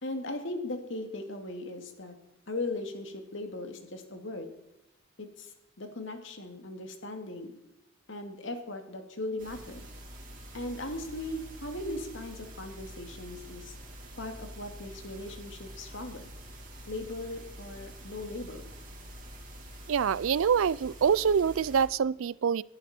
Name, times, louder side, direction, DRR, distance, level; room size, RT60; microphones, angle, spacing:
voice 1, 0.0-2.1 2.5-4.5 5.2-5.5 5.8-7.6 8.1-9.9 10.5-13.7 14.2-16.3 16.9-18.7, left 2 dB, 65° left, 5 dB, 2.4 m, -38 dB
sound 1, 9.4-21.9, equal, 40° right, 3.8 m, -46 dB
voice 2, 19.9-22.6, right 7 dB, 80° right, 22 dB, 0.4 m, -25 dB
20.5 x 11.5 x 4.4 m, 0.90 s
head